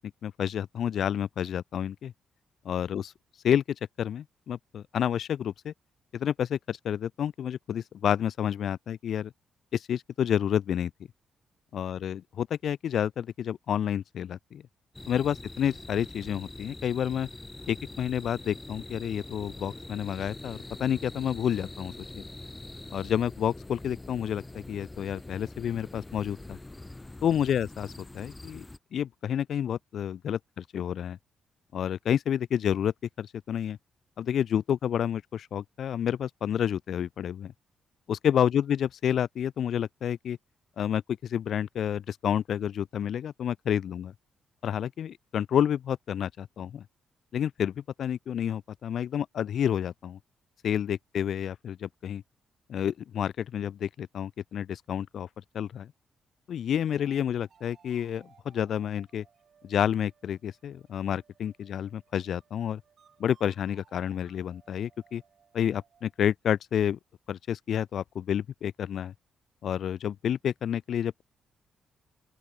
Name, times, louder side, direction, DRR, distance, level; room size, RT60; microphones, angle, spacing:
voice 1, 0.2-2.1 2.7-3.1 3.4-3.6 4.0-5.7 6.1-9.3 9.7-10.9 11.7-14.6 15.1-17.3 17.7-22.3 22.9-26.6 27.2-28.7 28.9-31.2 31.7-33.8 34.2-37.5 38.1-40.4 40.8-44.1 44.6-46.8 47.3-50.2 50.6-52.2 52.7-55.3 55.5-55.9 56.5-59.2 59.6-62.8 63.2-65.2 65.5-67.0 67.3-69.1 69.6-71.2, left 9 dB, 60° left, 0.3 m, -29 dB
sound 1, 14.9-28.8, left 2 dB, 15° left, 1.1 m, -44 dB
sound 2, 56.8-66.2, right 7 dB, 50° right, 5.8 m, -63 dB
open air
cardioid pair, 130°, 0 cm